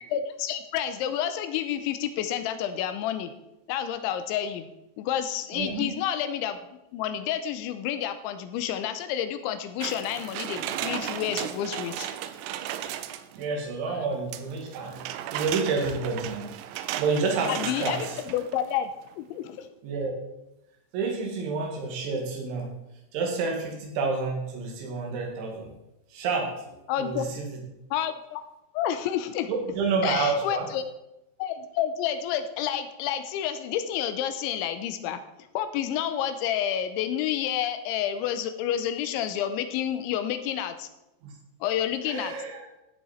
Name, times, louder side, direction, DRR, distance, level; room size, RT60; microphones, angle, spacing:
voice 1, 0.0-3.3 3.7-4.7 5.0-6.6 6.9-12.1 17.5-18.9 19.2-19.7 26.9-27.3 27.9-28.4 28.7-29.5 30.0-30.8 31.4-35.2 35.5-40.9 41.6-42.3, left 10 dB, 80° left, 9 dB, 2.8 m, -29 dB
voice 2, 5.5-5.9 13.3-15.0 15.3-16.5 17.0-18.2 19.8-20.1 20.9-22.7 23.1-25.7 26.1-27.6 29.5-30.7 41.2-41.3 42.1-42.6, right 4 dB, 65° right, 0 dB, 4.5 m, -29 dB
sound 1, 9.8-13.5 14.3-18.7 19.1-19.2, right 11 dB, 90° right, 2.6 m, -35 dB
17.0 x 7.0 x 4.4 m, 0.91 s
omnidirectional pair, 5.9 m